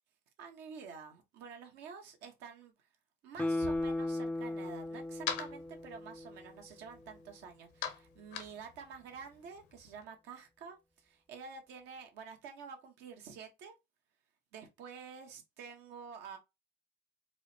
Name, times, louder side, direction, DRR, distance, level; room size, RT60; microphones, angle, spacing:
voice 1, 0.4-2.7 3.2-13.7 14.5-16.4, right 6 dB, 85° right, 0.9 m, -49 dB
Guitar, 3.4-6.6 7.0-7.1, left 2 dB, 10° left, 0.4 m, -36 dB
sound 1, 3.6-5.2, right 4 dB, 50° right, 0.6 m, -53 dB
sound 2, 4.3-10.0, left 8 dB, 80° left, 0.8 m, -45 dB
4.7 x 2.0 x 2.6 m
cardioid pair, 110°, 17 cm